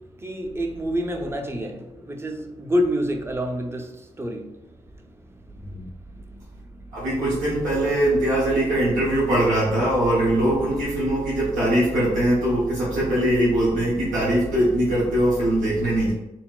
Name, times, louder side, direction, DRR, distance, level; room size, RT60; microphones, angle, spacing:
voice 1, 0.1-7.1, equal, 20° right, 0.6 m, -29 dB
voice 2, 6.9-16.1, right 1 dB, 85° right, 0.9 m, -21 dB
4.1 x 2.0 x 2.3 m
supercardioid pair, 55°, 13 cm